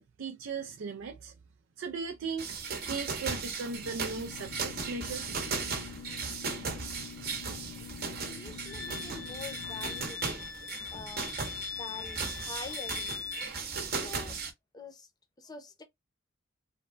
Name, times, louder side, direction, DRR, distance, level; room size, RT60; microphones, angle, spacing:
voice 1, 0.0-1.3 1.8-2.5 2.9-5.3, right 4 dB, 75° right, 0.4 m, -37 dB
sound 1, 2.4-14.5, right 4 dB, 55° right, 0.8 m, -37 dB
sound 2, 3.7-10.1, left 6 dB, 60° left, 0.3 m, -47 dB
voice 2, 8.3-10.4 10.9-11.3 11.7-13.2 14.0-14.4 14.7-15.1 15.4-15.8, left 3 dB, 20° left, 0.6 m, -45 dB
Wind instrument woodwind instrument, 8.6-13.5, left 7 dB, 85° left, 1.0 m, -41 dB
3.3 x 2.1 x 2.4 m
head